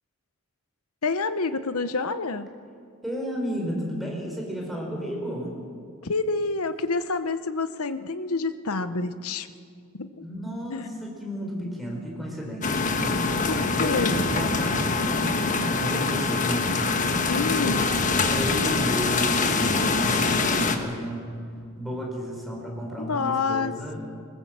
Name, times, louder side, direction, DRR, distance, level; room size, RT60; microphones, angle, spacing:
voice 1, 1.0-2.5 6.0-9.5 9.9-10.2 10.7-10.9 13.5-14.2 17.3-17.9 23.0-23.7, left 4 dB, 80° left, 12 dB, 1.0 m, -28 dB
voice 2, 3.0-5.6 10.2-12.9 13.8-16.7 17.4-17.9 18.3-21.3 21.8-24.0, equal, ahead, -2 dB, 4.7 m, -33 dB
sound 1, 12.6-20.8, left 3 dB, 35° left, 1.4 m, -24 dB
20.5 x 19.5 x 7.5 m, 2.3 s
head